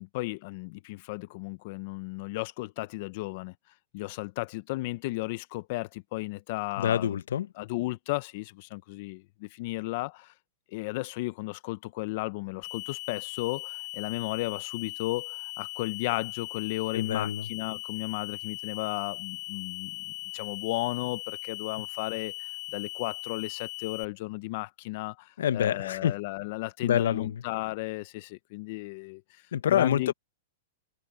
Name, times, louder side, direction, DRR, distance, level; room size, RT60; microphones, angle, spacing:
voice 1, 0.0-3.5 3.9-7.2 7.6-10.3 10.7-29.4 29.7-30.1, left 20 dB, 45° left, 0.6 m, -34 dB
voice 2, 6.8-7.5 16.9-17.4 25.4-26.1 26.8-27.4 29.5-30.1, left 9 dB, 80° left, 0.8 m, -26 dB
sound 1, 12.6-24.0, left 30 dB, 30° left, 1.4 m, -39 dB
hypercardioid pair, 155°, 0 cm